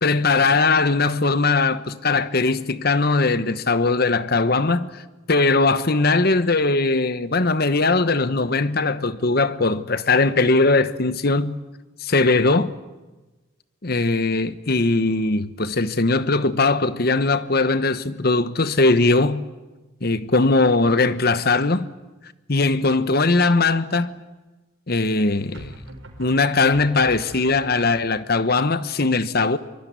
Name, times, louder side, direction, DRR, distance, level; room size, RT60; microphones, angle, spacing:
voice 1, 0.0-5.0 5.3-11.6 12.0-12.7 13.8-19.5 20.0-21.9 22.5-24.2 24.9-25.7 26.2-29.6, left 3 dB, 50° left, 1.1 m, -20 dB
sound 1, 22.9-23.4 25.5-28.2, right 1 dB, 75° right, 4.9 m, -42 dB
24.0 x 23.0 x 9.6 m
head